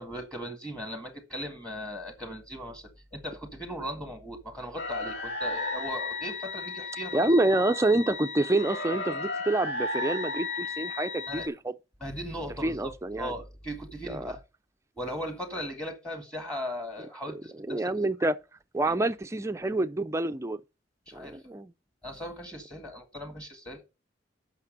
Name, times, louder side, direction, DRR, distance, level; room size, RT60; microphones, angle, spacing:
voice 1, 0.0-7.3 11.3-11.5 12.0-14.4 15.0-17.9 18.9-19.0 21.1-21.4 22.0-23.8, equal, 5° left, 1.8 m, -38 dB
sound 1, 4.8-11.5, left 3 dB, 70° left, 3.3 m, -34 dB
voice 2, 7.1-11.7 12.6-13.3 14.1-14.3 17.7-18.4 18.7-20.6 21.1-21.7, right 2 dB, 15° right, 0.4 m, -27 dB
8.3 x 6.0 x 6.6 m
head